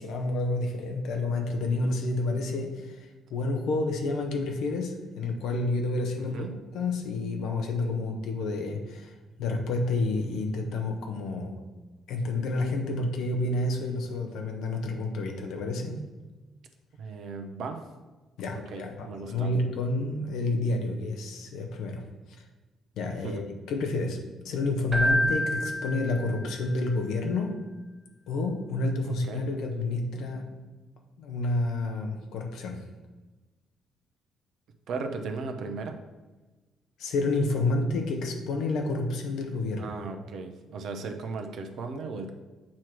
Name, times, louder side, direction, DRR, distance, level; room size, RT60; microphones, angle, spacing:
voice 1, 0.0-6.4 6.7-9.1 9.4-11.6 12.1-16.0 18.4-22.0 22.4-22.5 23.0-23.4 23.7-27.6 28.3-30.6 31.2-32.8 37.0-40.0, left 2 dB, 70° left, 3 dB, 1.1 m, -29 dB
voice 2, 6.2-6.5 17.0-17.8 18.5-19.5 23.2-23.4 29.3-29.5 34.9-36.0 39.8-42.3, right 4 dB, 65° right, 5 dB, 0.9 m, -36 dB
Keyboard (musical), 24.9-26.7, equal, 25° right, 1.6 m, -28 dB
7.5 x 3.1 x 6.0 m, 1.2 s
hypercardioid pair, 50°, 0 cm